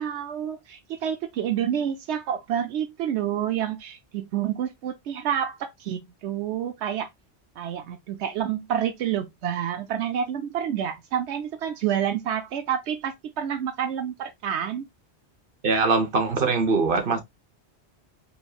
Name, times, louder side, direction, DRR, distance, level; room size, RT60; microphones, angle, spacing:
voice 1, 0.0-7.1 7.6-14.9, right 9 dB, 85° right, 0.9 m, -28 dB
voice 2, 15.6-17.2, right 4 dB, 55° right, 1.3 m, -22 dB
5.3 x 3.2 x 2.4 m
omnidirectional pair, 1.1 m